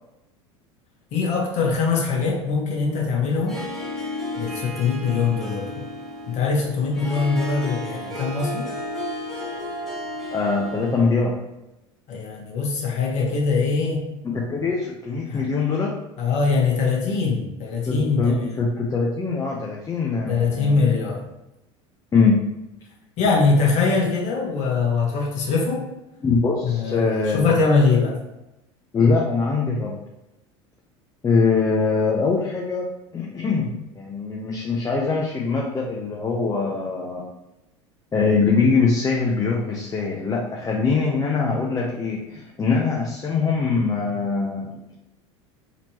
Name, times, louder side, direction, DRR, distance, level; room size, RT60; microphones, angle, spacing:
voice 1, 1.1-3.6 4.4-5.8 6.3-8.7 12.1-14.0 15.3-15.4 16.2-18.6 20.3-21.2 23.2-25.9 26.6-28.2, left 4 dB, 50° left, -2 dB, 1.3 m, -22 dB
Harp, 3.3-11.2, left 1 dB, ahead, 1.3 m, -33 dB
voice 2, 10.3-11.4 14.2-16.0 17.9-20.8 22.1-22.5 26.2-27.6 28.9-30.0 31.2-37.3 38.1-44.8, left 4 dB, 20° left, -2 dB, 0.6 m, -22 dB
4.1 x 3.0 x 2.9 m, 0.92 s
hypercardioid pair, 90°, 15 cm